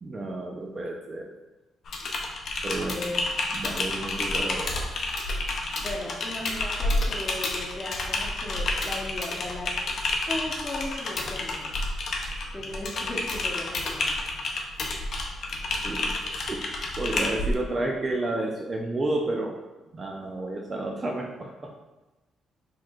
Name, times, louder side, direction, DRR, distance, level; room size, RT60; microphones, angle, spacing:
voice 1, 0.0-1.3 2.6-3.1 3.5-5.1 15.8-16.7 17.0-19.6 19.9-21.7, right 2 dB, 30° right, 0 dB, 0.4 m, -31 dB
Typing, 1.9-17.5, left 2 dB, 55° left, 0.5 m, -30 dB
voice 2, 2.7-3.2 5.8-9.7 10.3-11.8 12.5-14.1, left 1 dB, 15° left, -3 dB, 1.0 m, -36 dB
4.4 x 3.1 x 2.4 m, 1.1 s
cardioid pair, 90°, 0 cm